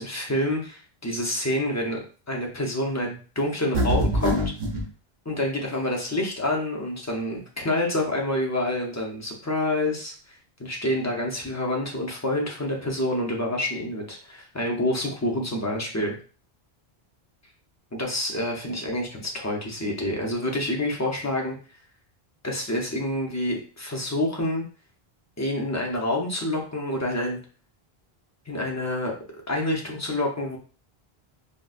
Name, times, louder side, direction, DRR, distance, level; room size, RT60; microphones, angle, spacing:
voice 1, 0.0-4.4 5.3-16.1 17.9-21.5 22.4-24.6 25.4-27.4 28.5-29.2 29.5-30.6, left 1 dB, 20° left, -1 dB, 0.5 m, -27 dB
sound 1, 3.7-4.9, equal, 60° right, 0.9 m, -24 dB
3.9 x 2.1 x 2.4 m, 0.38 s
omnidirectional pair, 1.0 m